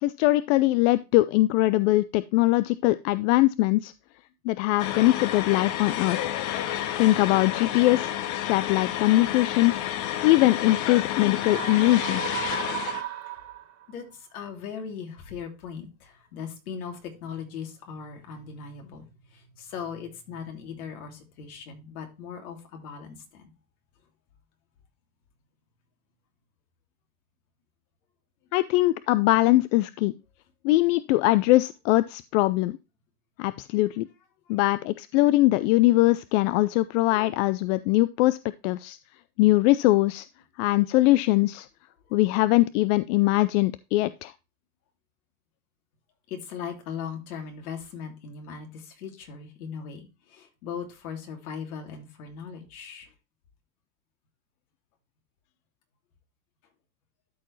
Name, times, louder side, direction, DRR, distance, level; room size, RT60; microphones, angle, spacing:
voice 1, 0.0-3.9 4.4-6.4 7.0-9.7 10.2-12.2 28.5-30.1 30.6-32.8 33.4-34.1 34.5-38.4 38.6-39.0 39.4-40.3 40.6-41.7 42.1-44.3, left 18 dB, 60° left, 0.5 m, -22 dB
sound 1, 4.8-13.0, left 11 dB, 45° left, 1.1 m, -30 dB
sound 2, 11.3-13.9, right 12 dB, 40° right, 2.0 m, -35 dB
voice 2, 12.4-13.1 13.9-23.5 42.0-42.2 46.3-53.1, left 6 dB, 75° left, 3.0 m, -39 dB
12.5 x 4.6 x 3.1 m
supercardioid pair, 115°, 43 cm